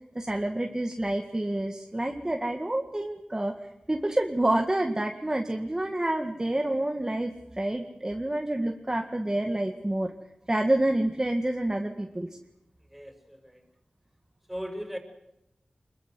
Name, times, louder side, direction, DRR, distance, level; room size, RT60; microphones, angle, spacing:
voice 1, 0.2-3.5 3.9-10.1 10.5-12.3, right 1 dB, 25° right, 3 dB, 2.0 m, -28 dB
voice 2, 12.9-13.6 14.5-15.0, equal, 5° right, 5 dB, 5.7 m, -38 dB
25.0 x 22.0 x 7.9 m, 0.87 s
wide cardioid pair, 60°, 3 cm